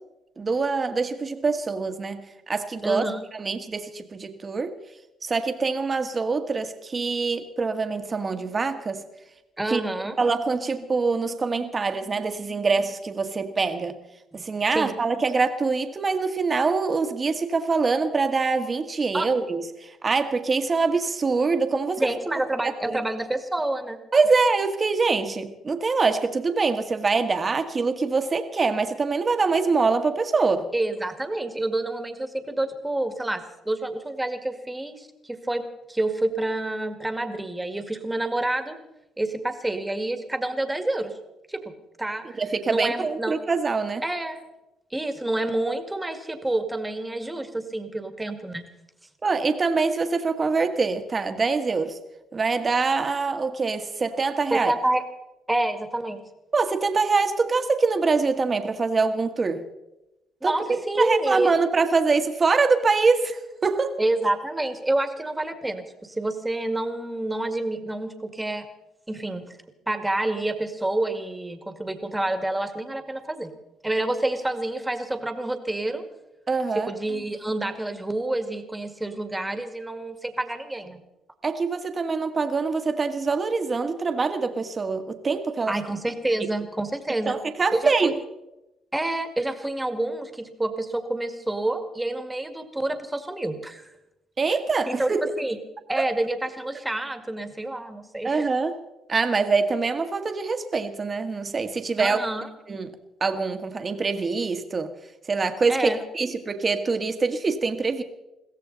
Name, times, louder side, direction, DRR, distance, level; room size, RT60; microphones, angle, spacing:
voice 1, 0.4-3.0 3.3-4.7 5.2-9.0 9.7-9.8 10.2-13.9 14.3-22.1 22.6-23.0 24.1-30.7 42.4-44.0 49.2-52.0 52.3-54.7 56.5-59.6 60.4-64.0 76.5-76.9 81.4-85.8 87.3-88.2 94.4-95.3 96.0-96.1 98.2-98.7 99.1-102.2 102.7-102.9 103.2-104.9 105.3-108.0, right 4 dB, 30° right, 7 dB, 1.7 m, -24 dB
voice 2, 2.8-3.2 9.6-10.2 14.3-14.4 14.7-15.0 19.1-19.3 22.0-24.0 30.7-38.8 39.2-41.1 41.5-41.7 42.0-42.4 42.7-43.3 44.0-44.4 44.9-48.6 54.5-55.0 55.5-56.2 60.4-61.6 64.0-68.7 69.1-69.6 69.9-73.5 73.8-76.1 76.7-81.0 85.7-87.4 87.7-88.1 88.9-93.9 94.9-95.6 95.9-98.5 102.0-102.5 105.7-106.0, right 2 dB, 10° right, 7 dB, 2.0 m, -28 dB
22.5 x 16.0 x 4.1 m, 0.93 s
cardioid pair, 100°, 0 cm